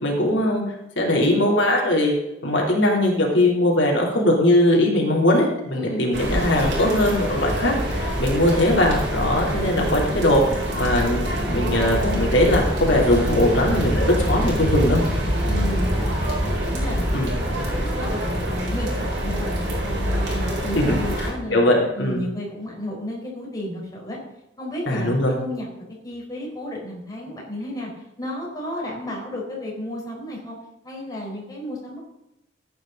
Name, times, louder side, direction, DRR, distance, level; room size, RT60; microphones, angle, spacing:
voice 1, 0.0-0.6 1.0-2.1 2.4-11.2 11.5-15.0 17.1-17.3 20.7-22.2 24.9-25.4, left 1 dB, 85° left, -2 dB, 3.2 m, -20 dB
voice 2, 5.7-6.1 15.5-16.4 16.7-18.9 19.2-21.6 21.9-24.2 24.6-27.9 28.2-30.6 30.8-32.0, equal, 20° left, -4 dB, 4.3 m, -32 dB
sound 1, 6.1-21.3, equal, 70° right, 4.9 m, -25 dB
14.5 x 9.3 x 3.9 m, 0.90 s
head